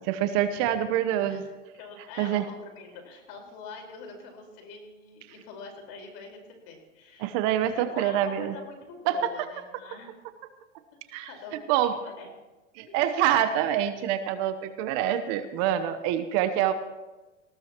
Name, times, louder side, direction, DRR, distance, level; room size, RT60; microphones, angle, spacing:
voice 1, 0.0-1.4 2.2-2.4 7.2-8.5 9.1-9.2 11.1-11.3 11.7-11.9 12.7-16.7, right 11 dB, 45° right, 10 dB, 1.1 m, -26 dB
voice 2, 1.3-7.3 7.7-10.1 11.2-12.3 12.8-13.0, left 4 dB, 50° left, 2 dB, 4.8 m, -45 dB
19.5 x 17.0 x 3.0 m, 1.1 s
hypercardioid pair, 125°, 37 cm